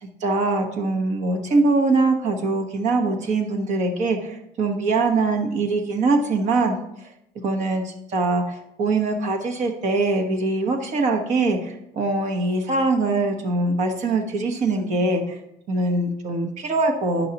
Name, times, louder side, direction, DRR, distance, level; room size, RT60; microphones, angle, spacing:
voice 1, 0.2-6.8 7.4-15.4 15.7-17.3, right 3 dB, 55° right, 4 dB, 1.1 m, -22 dB
10.5 x 5.5 x 2.9 m, 0.80 s
cardioid pair, 155°, 15 cm